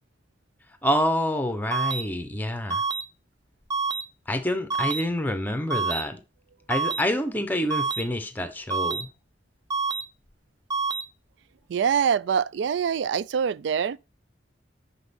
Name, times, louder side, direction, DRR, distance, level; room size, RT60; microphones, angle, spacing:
voice 1, 0.8-2.8 4.3-6.2 6.7-9.1, left 1 dB, 10° left, 0.9 m, -27 dB
sound 1, 1.7-2.0 2.7-3.0 3.7-4.0 4.7-5.0 5.7-6.0 6.7-7.0 7.7-8.0 8.7-9.0 9.7-10.0 10.7-11.0, right 4 dB, 20° right, 0.6 m, -27 dB
voice 2, 11.7-14.0, right 7 dB, 75° right, 0.3 m, -24 dB
5.9 x 5.8 x 4.1 m
head